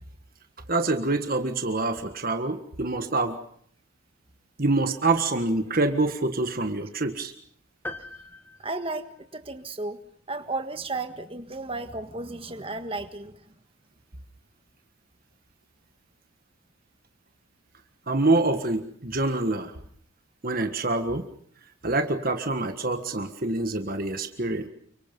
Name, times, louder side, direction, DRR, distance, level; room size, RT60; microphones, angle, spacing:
voice 1, 0.7-3.4 4.6-7.3 18.1-19.7 20.4-21.2 21.8-24.7, right 2 dB, 45° right, 7 dB, 1.6 m, -26 dB
sound 1, 7.8-9.6, left 2 dB, 10° left, 1.5 m, -41 dB
voice 2, 8.6-10.0 10.3-13.5, right 2 dB, 25° right, 8 dB, 1.6 m, -34 dB
29.5 x 24.5 x 5.4 m, 0.62 s
head